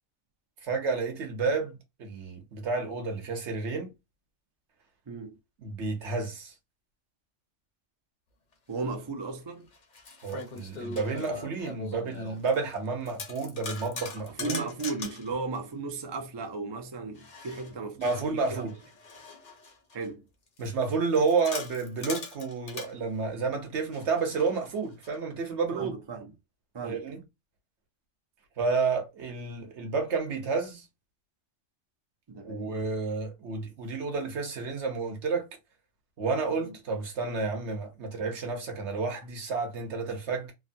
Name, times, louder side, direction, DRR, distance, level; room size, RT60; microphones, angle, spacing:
voice 1, 0.6-3.9 5.6-6.5 10.2-14.6 18.0-18.7 20.6-25.9 26.8-27.2 28.6-30.8 32.4-35.5 36.2-40.5, right 4 dB, 65° right, 1.2 m, -30 dB
voice 2, 5.1-5.4 8.7-9.7 14.3-18.7 19.9-20.2 25.7-26.3 26.7-27.1 32.3-32.8 36.6-36.8, right 3 dB, 40° right, 0.4 m, -36 dB
sound 1, 8.8-8.9 9.7-12.8 13.1-15.3 17.2-20.1 20.6-22.9 23.9-25.2, left 4 dB, 45° left, 0.7 m, -41 dB
3.1 x 2.1 x 2.6 m
omnidirectional pair, 1.3 m